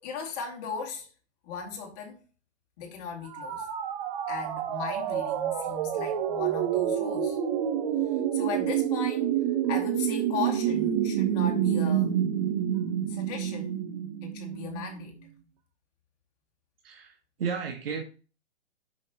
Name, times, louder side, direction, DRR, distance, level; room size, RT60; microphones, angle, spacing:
voice 1, 0.0-1.1 1.4-2.2 2.8-3.7 4.3-7.4 8.3-9.3 9.7-12.2 13.1-13.8 14.2-15.2, left 6 dB, 35° left, 2.5 m, -37 dB
sound 1, 3.3-15.1, right 10 dB, 35° right, 1.3 m, -28 dB
voice 2, 16.8-18.0, right 6 dB, 55° right, 1.8 m, -33 dB
8.4 x 6.2 x 3.0 m
figure-of-eight pair, 120°, 35 cm